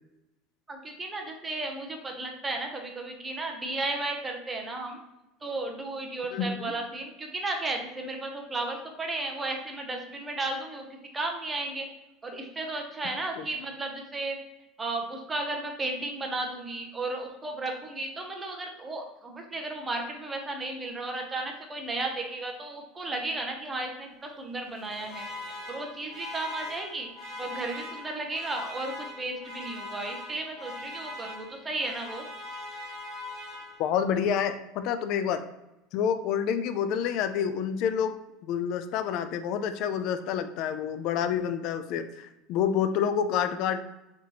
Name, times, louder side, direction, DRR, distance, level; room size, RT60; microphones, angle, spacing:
voice 1, 0.7-5.0 5.4-11.9 12.2-14.4 14.8-25.3 25.7-27.1 27.4-32.2, right 2 dB, 15° right, 3 dB, 0.7 m, -34 dB
voice 2, 6.3-6.7 13.4-13.5 33.8-35.4 35.9-38.2 38.4-43.8, left 8 dB, 55° left, 10 dB, 0.3 m, -28 dB
Alarm, 24.7-34.1, left 1 dB, 15° left, 1.3 m, -41 dB
4.0 x 3.0 x 2.8 m, 0.96 s
supercardioid pair, 135°, 0 cm